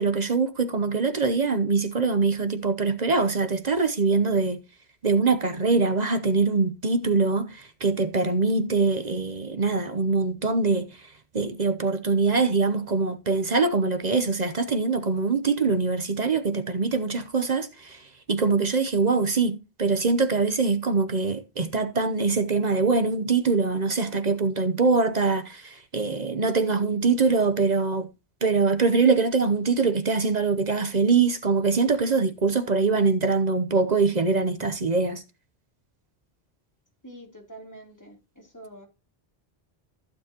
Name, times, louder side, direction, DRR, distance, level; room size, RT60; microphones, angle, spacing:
voice 1, 0.0-4.6 5.0-28.1 28.4-35.2, right 4 dB, 45° right, 0.9 m, -23 dB
voice 2, 37.0-38.9, right 1 dB, 15° left, 3.1 m, -46 dB
15.0 x 7.2 x 2.9 m
omnidirectional pair, 1.1 m